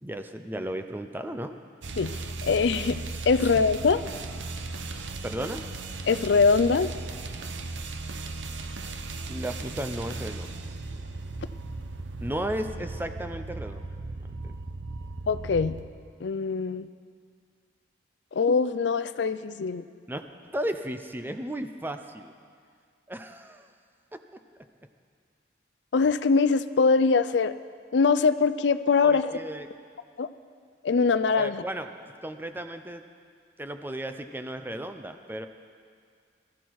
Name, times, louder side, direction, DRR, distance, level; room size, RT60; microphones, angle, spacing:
voice 1, 0.0-1.6 3.4-3.5 5.2-5.6 9.3-10.7 12.2-13.9 14.4-14.5 20.1-20.2 20.5-22.3 23.1-23.7 24.1-24.2 29.0-29.7 31.3-31.9 32.2-33.0 33.6-35.5, right 1 dB, 10° right, 7 dB, 0.6 m, -34 dB
sound 1, 1.8-15.9, right 3 dB, 85° right, 0.9 m, -37 dB
voice 2, 2.4-4.0 6.1-6.9 15.3-15.8 16.2-16.9 18.3-19.8 25.9-27.5 27.9-29.4 30.2-30.3 30.8-31.6, left 4 dB, 70° left, 13 dB, 0.4 m, -23 dB
19.5 x 13.5 x 4.7 m, 2.1 s
head